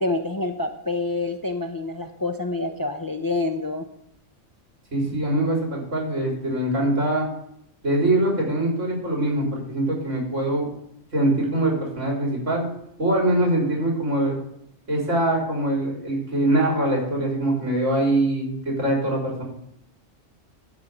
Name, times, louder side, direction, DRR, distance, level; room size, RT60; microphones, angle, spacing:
voice 1, 0.0-3.9, left 2 dB, 25° left, 6 dB, 0.5 m, -27 dB
voice 2, 4.9-7.3 7.8-10.7 11.1-12.7 13.0-14.4 14.9-19.4, right 1 dB, 75° right, -1 dB, 4.2 m, -23 dB
13.5 x 5.3 x 7.2 m, 0.74 s
omnidirectional pair, 1.3 m